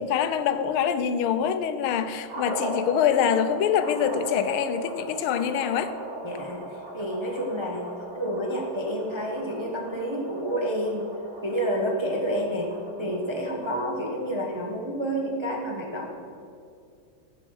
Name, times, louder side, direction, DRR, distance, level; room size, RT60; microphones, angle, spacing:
voice 1, 0.0-5.9, left 8 dB, 85° left, 11 dB, 1.5 m, -25 dB
sound 1, 2.3-14.5, right 1 dB, 70° right, 2.9 m, -39 dB
voice 2, 6.2-6.7 6.9-11.1 11.4-16.1, equal, 25° right, -1 dB, 0.6 m, -29 dB
13.5 x 5.6 x 6.2 m, 2.3 s
omnidirectional pair, 2.3 m